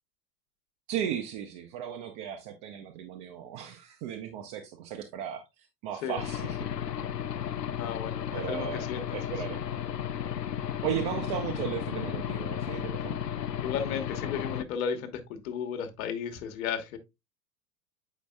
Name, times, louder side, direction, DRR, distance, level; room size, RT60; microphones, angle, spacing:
voice 1, 0.9-5.4 5.8-6.6 8.3-9.6 10.8-13.2, right 9 dB, 40° right, 0.8 m, -35 dB
Aircraft / Engine, 6.2-14.6, left 9 dB, 80° left, 0.6 m, -34 dB
voice 2, 7.8-9.2 13.6-17.0, left 7 dB, 60° left, 1.3 m, -34 dB
8.3 x 5.1 x 2.3 m
figure-of-eight pair, 80°, 48 cm